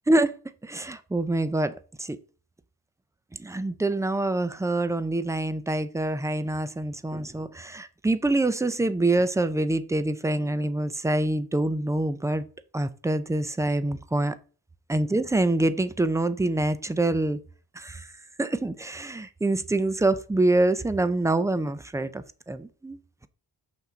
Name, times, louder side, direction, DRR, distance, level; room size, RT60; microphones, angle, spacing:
voice 1, 0.1-0.4 0.6-2.2 3.3-12.4 12.7-14.4 14.9-17.4 17.7-18.1 18.4-23.0, right 2 dB, 10° right, 0.3 m, -26 dB
6.1 x 5.7 x 3.8 m
wide cardioid pair, 160°, 42 cm